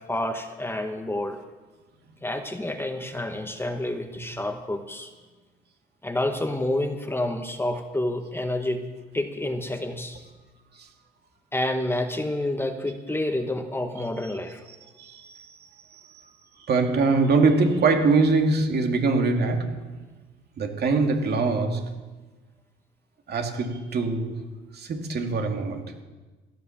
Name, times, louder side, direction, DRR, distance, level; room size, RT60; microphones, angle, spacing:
voice 1, 0.1-1.4 2.2-5.1 6.0-8.8 9.1-10.2 11.5-14.6, left 1 dB, 10° left, 6 dB, 1.6 m, -29 dB
voice 2, 14.7-15.6 15.9-16.3 16.7-19.9 20.6-22.0 23.3-24.4 24.7-26.0, right 3 dB, 50° right, 3 dB, 2.6 m, -24 dB
16.5 x 10.5 x 7.3 m, 1.2 s
supercardioid pair, 85°, 21 cm